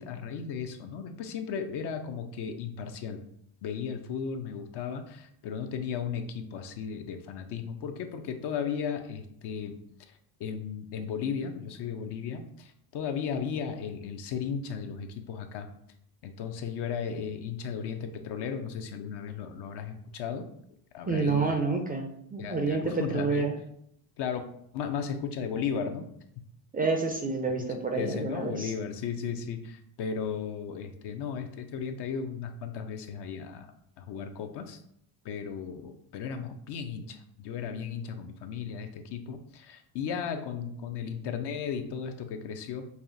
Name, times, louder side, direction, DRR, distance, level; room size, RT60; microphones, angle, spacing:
voice 1, 0.0-3.2 3.6-9.8 10.4-15.7 16.2-20.5 20.9-21.6 22.4-23.5 24.2-24.4 24.7-26.0 27.6-27.7 27.9-33.7 34.0-34.8 35.2-42.9, left 7 dB, 55° left, 6 dB, 0.6 m, -35 dB
voice 2, 21.1-23.6 26.7-28.7, right 4 dB, 20° right, 3 dB, 0.4 m, -29 dB
5.6 x 2.4 x 2.6 m, 0.71 s
supercardioid pair, 95°, 49 cm